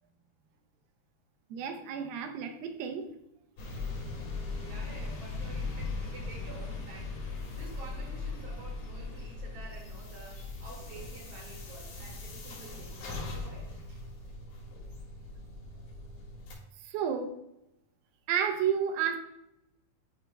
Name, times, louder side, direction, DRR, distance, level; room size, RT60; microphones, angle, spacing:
voice 1, 1.5-3.1 16.8-17.3 18.3-19.2, right 8 dB, 80° right, 6 dB, 2.4 m, -31 dB
sound 1, 3.6-16.5, left 3 dB, 75° left, 3.9 m, -39 dB
voice 2, 4.6-14.0, right 2 dB, 55° right, -3 dB, 3.0 m, -50 dB
12.0 x 5.0 x 2.2 m, 0.86 s
omnidirectional pair, 4.3 m